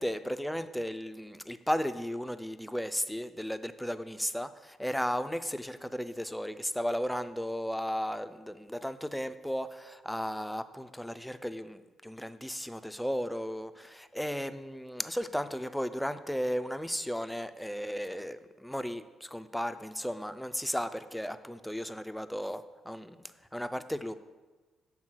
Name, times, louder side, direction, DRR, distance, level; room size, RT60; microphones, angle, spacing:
voice 1, 0.0-23.2 23.5-24.2, equal, 5° left, 11 dB, 0.3 m, -35 dB
6.3 x 3.6 x 6.0 m, 1.3 s
cardioid pair, 90°, 0 cm